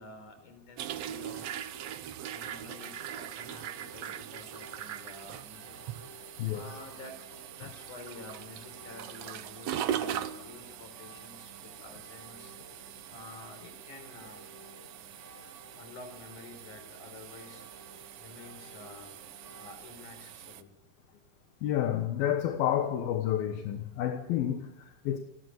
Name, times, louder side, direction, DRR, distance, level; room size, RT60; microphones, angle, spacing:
voice 1, 0.0-1.5 2.3-5.8 6.0-6.2 6.5-7.2 7.5-12.5 12.8-14.5 15.7-17.6 18.2-19.1 19.6-20.7, left 3 dB, 60° left, 5.6 m, -50 dB
sound 1, 0.8-20.6, right 10 dB, 75° right, 1.5 m, -41 dB
sound 2, 1.0-19.7, right 1 dB, 40° right, 5.1 m, -55 dB
voice 2, 6.4-6.8 21.6-25.2, left 11 dB, 80° left, 3.1 m, -30 dB
29.5 x 12.5 x 9.7 m
omnidirectional pair, 4.1 m